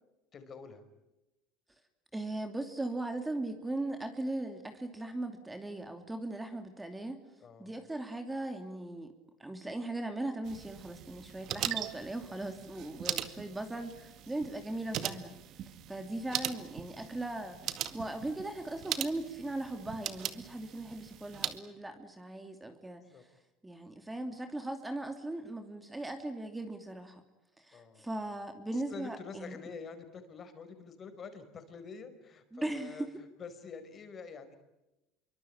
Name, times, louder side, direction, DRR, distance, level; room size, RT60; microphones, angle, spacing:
voice 1, 0.3-0.9 7.4-7.7 23.1-23.2 27.7-28.1 28.7-34.6, left 5 dB, 35° left, 9 dB, 5.2 m, -47 dB
voice 2, 2.1-7.2 7.6-9.1 9.4-15.3 15.9-23.3 23.6-27.2 27.6-29.6 32.5-33.1, right 2 dB, 10° right, 6 dB, 2.8 m, -38 dB
sound 1, 10.4-21.6, right 11 dB, 55° right, 2.0 m, -40 dB
26.0 x 24.0 x 8.9 m, 0.97 s
supercardioid pair, 110°, 0 cm